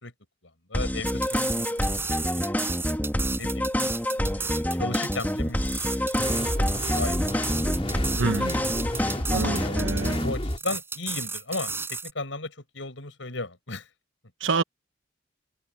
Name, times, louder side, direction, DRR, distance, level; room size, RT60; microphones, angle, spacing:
voice 1, 0.7-1.7 2.4-2.6 3.4-3.7 4.3-7.3 9.3-13.9, left 3 dB, 80° left, 5.7 m, -36 dB
sound 1, 0.7-10.3, equal, 10° left, 2.6 m, -28 dB
sound 2, 1.0-12.1, right 4 dB, 15° right, 5.2 m, -33 dB
sound 3, 6.2-10.6, left 1 dB, 30° left, 3.0 m, -31 dB
voice 2, 8.2-8.6 9.3-10.2 14.4-14.6, right 4 dB, 80° right, 1.0 m, -27 dB
head